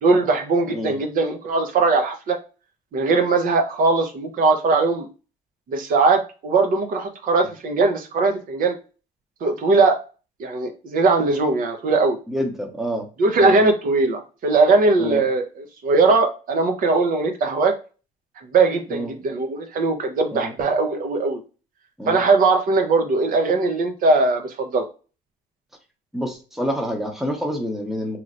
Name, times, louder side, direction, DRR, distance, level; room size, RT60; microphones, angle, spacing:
voice 1, 0.0-2.4 2.9-5.1 5.7-8.7 9.4-10.0 10.4-12.2 13.2-17.7 18.5-21.4 22.1-24.9, right 3 dB, 55° right, 5 dB, 0.7 m, -20 dB
voice 2, 12.3-13.1 13.4-13.6 15.0-15.2 18.9-19.1 20.3-20.5 22.0-22.2 26.1-28.2, equal, ahead, 3 dB, 0.7 m, -27 dB
3.1 x 2.9 x 2.5 m, 0.34 s
cardioid pair, 110°, 17 cm